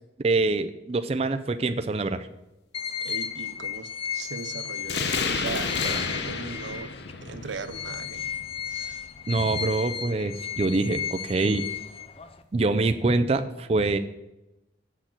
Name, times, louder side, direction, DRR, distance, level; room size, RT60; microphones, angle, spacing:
voice 1, 0.2-2.3 9.3-11.7 12.5-14.0, right 3 dB, 35° right, 9 dB, 0.4 m, -25 dB
sound 1, 2.7-7.1 7.5-12.4, left 7 dB, 30° left, 0.5 m, -34 dB
voice 2, 3.0-6.9 7.2-8.3 8.7-9.0, right 4 dB, 85° right, 12 dB, 0.6 m, -38 dB
sound 2, 4.8-10.0, left 5 dB, 65° left, 0.7 m, -31 dB
7.4 x 6.4 x 7.6 m, 0.96 s
head